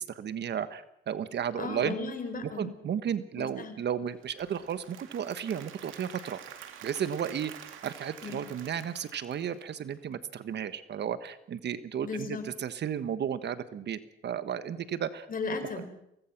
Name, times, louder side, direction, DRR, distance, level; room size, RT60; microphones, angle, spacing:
voice 1, 0.0-1.9 2.6-6.4 6.8-7.5 7.8-15.3 15.8-15.9, right 8 dB, 60° right, 13 dB, 1.4 m, -33 dB
voice 2, 1.6-2.7 3.4-3.7 8.2-8.4 12.0-12.4 15.3-15.8, left 4 dB, 45° left, 8 dB, 4.3 m, -35 dB
Applause / Crowd, 4.1-10.1, right 9 dB, 85° right, 2.6 m, -48 dB
23.5 x 19.0 x 6.0 m, 0.80 s
cardioid pair, 90°, 20 cm